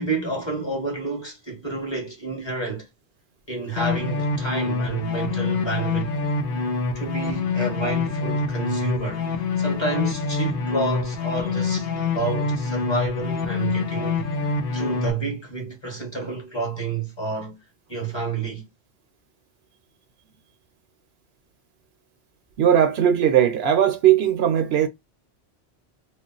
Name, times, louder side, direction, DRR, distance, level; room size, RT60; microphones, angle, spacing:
voice 1, 0.0-2.9 3.5-6.1 6.9-17.6 17.9-18.6, right 3 dB, 25° left, 1.0 m, -29 dB
sound 1, 3.8-15.1, left 4 dB, 60° left, 0.7 m, -26 dB
voice 2, 22.6-24.9, right 10 dB, 70° right, 0.8 m, -18 dB
2.4 x 2.0 x 3.7 m
omnidirectional pair, 1.1 m